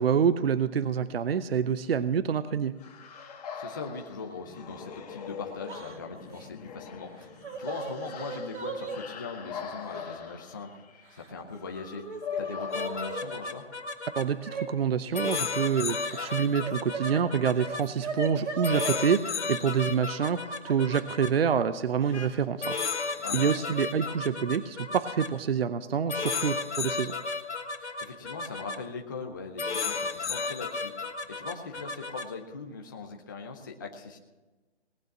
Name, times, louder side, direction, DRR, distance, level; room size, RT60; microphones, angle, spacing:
voice 1, 0.0-2.8 14.2-22.8 23.3-27.2, right 7 dB, 55° right, 13 dB, 0.7 m, -27 dB
sound 1, 2.8-13.8, left 6 dB, 35° left, 1.6 m, -41 dB
voice 2, 3.5-12.0 12.4-13.7 23.2-23.6 27.8-30.9 31.2-34.2, left 4 dB, 15° left, 2 dB, 0.6 m, -40 dB
Yell / Crying sobbing, 5.7-6.0 6.3-6.5 7.2-9.0 9.9-10.0 11.1-11.6 11.9-13.2 14.4-14.7 15.9-17.2 17.5-19.0 20.6-20.8 22.0-22.4 22.7-22.9 24.0-24.1 24.5-24.8, right 4 dB, 70° right, 2.6 m, -37 dB
sound 2, 12.7-14.2 15.1-17.8 18.6-21.3 22.1-22.3 22.6-25.3 26.1-28.8 29.6-32.2, left 4 dB, 70° left, 2.1 m, -33 dB
18.5 x 9.0 x 6.0 m, 1.2 s
hypercardioid pair, 155°, 36 cm